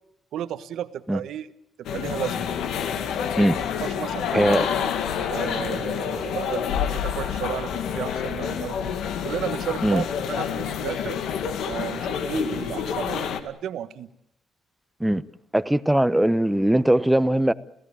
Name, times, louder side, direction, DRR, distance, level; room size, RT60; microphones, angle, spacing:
voice 1, 0.3-1.5 1.9-2.5 3.8-4.9 5.3-8.9 9.2-11.2 11.6-14.1, right 10 dB, 75° right, 1.4 m, -33 dB
sound 1, 1.8-13.4, left 8 dB, 80° left, 2.3 m, -28 dB
voice 2, 4.3-4.6 9.8-10.0 15.0-15.2 15.5-17.5, right 1 dB, 5° right, 1.1 m, -20 dB
29.5 x 16.5 x 8.7 m
cardioid pair, 90°, 0 cm